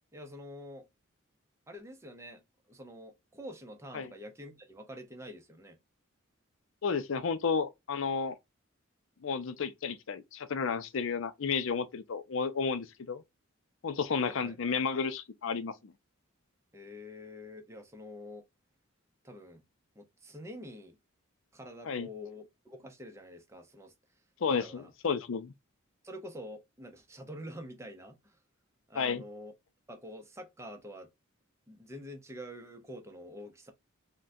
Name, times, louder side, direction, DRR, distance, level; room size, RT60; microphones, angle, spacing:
voice 1, 0.1-0.9 1.7-2.4 2.7-5.8 14.2-14.8 16.7-18.5 19.2-19.6 20.0-21.0 21.5-23.9 24.5-24.9 26.0-28.4 28.9-29.5 29.9-31.1 31.7-33.7, equal, 15° right, 0.6 m, -47 dB
voice 2, 6.8-8.4 9.2-13.2 13.8-15.9 21.9-22.1 24.4-25.5 28.9-29.2, left 5 dB, 65° left, 0.5 m, -32 dB
3.7 x 2.2 x 2.6 m
head